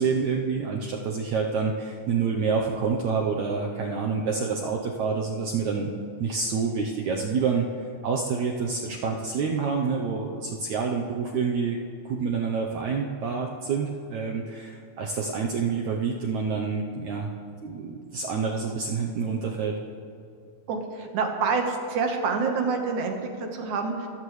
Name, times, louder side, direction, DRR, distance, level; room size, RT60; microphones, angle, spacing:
voice 1, 0.0-5.9 6.2-11.8 12.1-17.3 17.6-19.8, right 5 dB, 80° right, 1 dB, 1.7 m, -27 dB
voice 2, 20.7-24.1, right 4 dB, 60° right, 3 dB, 2.3 m, -27 dB
29.0 x 14.5 x 3.2 m, 2.5 s
omnidirectional pair, 4.5 m